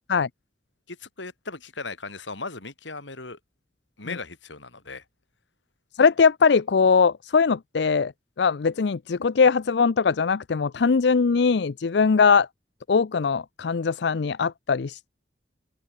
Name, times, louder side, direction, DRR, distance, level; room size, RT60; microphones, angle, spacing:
voice 1, 0.9-3.4 4.0-5.0, left 3 dB, 85° left, 4.4 m, -37 dB
voice 2, 6.0-8.1 8.4-12.5 12.9-15.1, left 5 dB, 65° left, 0.5 m, -21 dB
open air
head